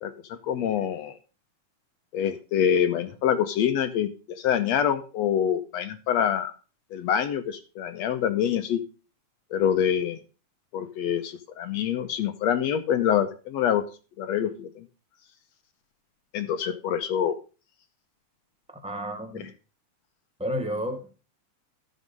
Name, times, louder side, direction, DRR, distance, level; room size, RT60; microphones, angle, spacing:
voice 1, 0.0-1.2 2.1-6.5 6.9-8.8 9.5-10.2 10.7-13.8 14.2-14.8 16.3-17.4 19.3-19.4, left 9 dB, 70° left, 9 dB, 1.8 m, -26 dB
voice 2, 18.8-19.5 20.4-21.2, equal, 10° right, 5 dB, 0.3 m, -31 dB
13.5 x 6.3 x 5.4 m, 0.34 s
omnidirectional pair, 3.6 m